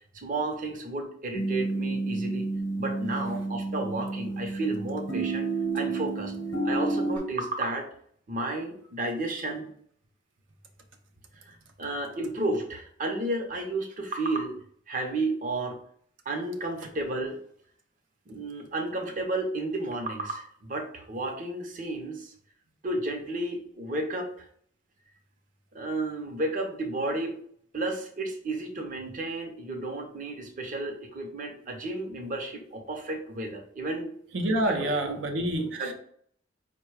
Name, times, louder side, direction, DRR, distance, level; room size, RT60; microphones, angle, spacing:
voice 1, 0.1-2.5 2.8-6.3 6.6-7.9 8.3-9.7 11.4-14.6 14.9-15.8 16.3-17.4 18.3-22.3 22.8-24.5 25.7-27.4 27.7-34.1 34.6-35.2 35.6-35.9, right 2 dB, 45° right, 2 dB, 0.7 m, -32 dB
sound 1, 1.3-7.2, right 3 dB, 70° left, 0.8 m, -30 dB
voice 2, 34.3-35.9, right 1 dB, 90° right, 4 dB, 0.6 m, -27 dB
4.6 x 2.2 x 4.6 m, 0.62 s
head